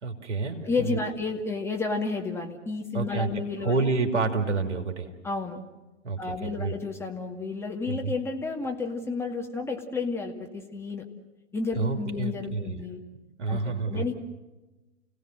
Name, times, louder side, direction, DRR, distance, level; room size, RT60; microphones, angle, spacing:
voice 1, 0.0-1.0 2.9-3.3 3.6-5.1 6.0-6.8 7.9-8.1 11.7-12.8 13.4-14.0, right 3 dB, 70° right, 5 dB, 2.9 m, -29 dB
voice 2, 0.6-3.7 5.2-5.6 6.2-11.0 11.5-13.0 13.5-14.1, left 3 dB, 5° left, 0 dB, 2.2 m, -31 dB
29.5 x 17.5 x 7.7 m, 1.1 s
figure-of-eight pair, 100°, 36 cm